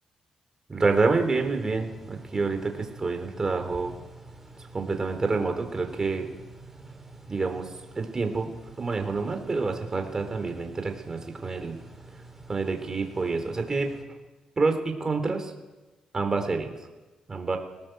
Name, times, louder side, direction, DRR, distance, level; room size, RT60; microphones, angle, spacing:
voice 1, 0.7-4.0 4.7-6.3 7.3-7.7 8.0-8.5 8.8-11.8 12.5-13.9 14.6-15.5 16.1-16.7 17.3-17.6, right 3 dB, 30° right, 5 dB, 3.9 m, -27 dB
sound 1, 0.8-14.0, right 2 dB, 10° right, 5.2 m, -47 dB
23.0 x 18.5 x 8.0 m, 1.2 s
cardioid pair, 90°, 2 cm